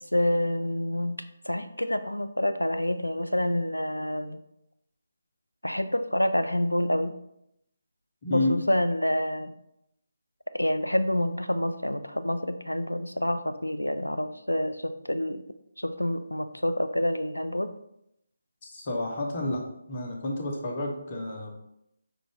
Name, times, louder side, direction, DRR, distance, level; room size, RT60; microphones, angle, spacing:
voice 1, 0.1-1.2 1.4-4.4 5.6-7.1 8.3-9.5 10.5-15.4 15.8-17.7, left 1 dB, 85° left, 11 dB, 0.3 m, -27 dB
voice 2, 8.2-8.5 18.6-19.6 19.9-21.5, left 1 dB, 35° left, 0 dB, 0.8 m, -30 dB
5.1 x 2.5 x 3.4 m, 0.79 s
figure-of-eight pair, 150°, 0 cm